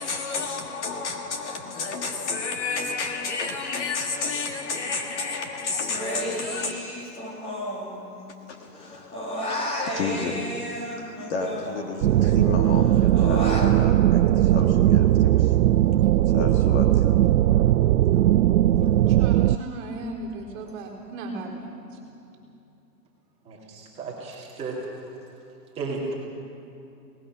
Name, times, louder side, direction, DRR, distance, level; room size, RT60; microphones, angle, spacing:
voice 1, 0.0-6.7 8.5-15.6 16.3-17.2, left 4 dB, 45° left, 1.9 m, -31 dB
Human voice, 5.9-8.5 8.8-12.3 12.6-13.7, equal, 10° left, 1.9 m, -32 dB
sound 1, 12.0-19.6, right 13 dB, 70° right, 0.5 m, -19 dB
voice 2, 19.1-22.0, right 2 dB, 30° right, 4.1 m, -36 dB
voice 3, 23.4-25.0 25.7-26.1, right 3 dB, 10° right, 2.6 m, -34 dB
22.5 x 19.0 x 6.2 m
hypercardioid pair, 160°, 49 cm